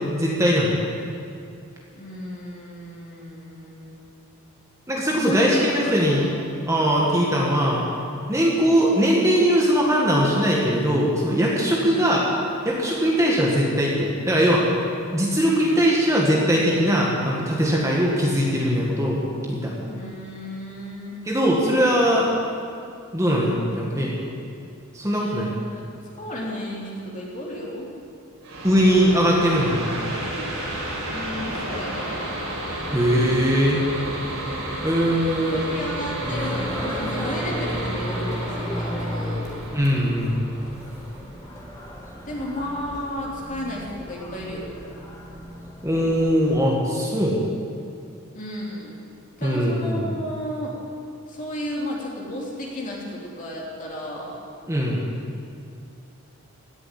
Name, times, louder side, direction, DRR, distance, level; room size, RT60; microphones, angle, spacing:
voice 1, 0.1-0.7 4.9-6.3 6.7-7.8 8.3-12.3 12.6-14.7 15.1-19.2 19.5-19.7 21.3-22.3 23.1-24.1 24.9-25.5 28.6-29.9 32.9-33.8 34.8-35.6 39.7-40.3 45.8-47.4 49.4-50.2 54.7-55.0, equal, 15° right, -3 dB, 1.8 m, -20 dB
voice 2, 1.9-4.0 5.2-6.5 7.0-7.3 11.7-12.3 19.9-21.3 25.1-27.9 31.1-32.1 35.5-39.6 42.2-44.7 48.3-49.0 49.4-50.7 51.3-54.4, left 1 dB, 35° left, -4 dB, 3.2 m, -33 dB
sound 1, 28.4-41.8, right 1 dB, 75° right, 4.8 m, -32 dB
sound 2, 36.2-46.5, equal, 15° left, 2.8 m, -34 dB
16.5 x 7.7 x 10.0 m, 2.5 s
head